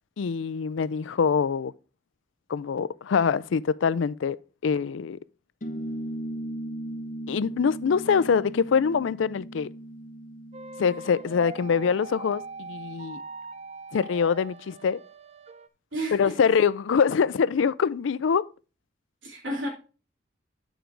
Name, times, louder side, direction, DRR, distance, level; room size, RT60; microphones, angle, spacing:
voice 1, 0.2-1.7 2.5-4.4 4.6-5.2 7.3-9.7 10.8-13.2 13.9-15.0 16.1-18.4, left 6 dB, 85° left, 0.4 m, -24 dB
sound 1, 5.6-12.6, right 1 dB, 45° left, 1.1 m, -38 dB
sound 2, 10.5-15.7, right 3 dB, 35° right, 0.6 m, -42 dB
voice 2, 15.9-16.4 19.2-19.7, right 1 dB, 90° right, 3.1 m, -31 dB
9.1 x 5.1 x 4.5 m
head